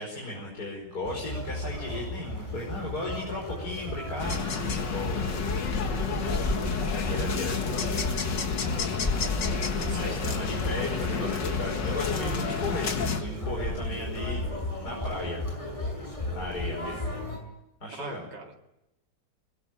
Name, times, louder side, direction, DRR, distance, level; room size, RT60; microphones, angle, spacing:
voice 1, 0.0-5.2 6.9-8.1 9.9-14.4 14.8-15.4 16.3-17.1 17.8-18.3, left 1 dB, 60° left, -2 dB, 5.8 m, -36 dB
Conversation, 1.0-17.4, left 1 dB, 15° left, 6.9 m, -34 dB
sound 1, 4.2-13.2, left 5 dB, 90° left, 2.5 m, -30 dB
voice 2, 9.7-10.2 17.9-18.5, right 2 dB, 75° right, 2 dB, 2.9 m, -40 dB
23.0 x 21.0 x 9.0 m, 0.90 s
omnidirectional pair, 1.9 m